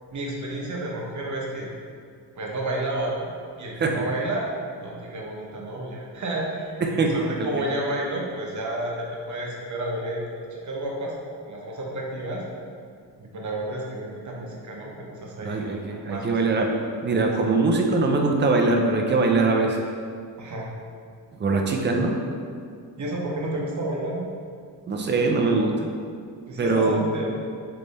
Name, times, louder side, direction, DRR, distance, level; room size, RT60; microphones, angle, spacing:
voice 1, 0.1-1.7 2.4-3.3 3.6-4.5 4.8-12.4 13.2-15.8 16.1-16.4 17.1-17.3 20.4-20.7 23.0-24.3 26.5-27.3, right 1 dB, 45° right, -2 dB, 1.0 m, -31 dB
voice 2, 6.8-7.5 15.4-16.7 17.0-19.8 21.4-22.2 24.9-25.9 26.6-27.0, right 3 dB, 25° right, 1 dB, 0.6 m, -22 dB
3.4 x 3.4 x 4.0 m, 2.2 s
cardioid pair, 85°, 40 cm